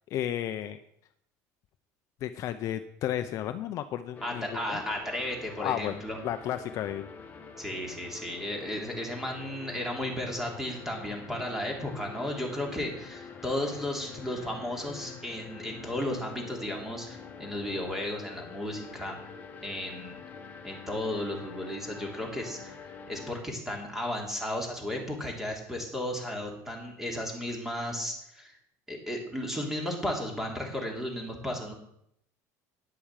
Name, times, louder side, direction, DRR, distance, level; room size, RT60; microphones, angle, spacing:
voice 1, 0.1-0.8 2.2-4.8 5.6-7.1, left 11 dB, 50° left, 9 dB, 0.8 m, -33 dB
sound 1, 4.1-23.4, left 5 dB, 25° left, 1.7 m, -46 dB
voice 2, 4.2-6.2 7.6-19.2 19.6-20.2 20.6-28.6 28.9-31.7, left 1 dB, 5° right, 1 dB, 3.0 m, -34 dB
10.0 x 8.4 x 7.5 m, 0.72 s
cardioid pair, 145°, 7 cm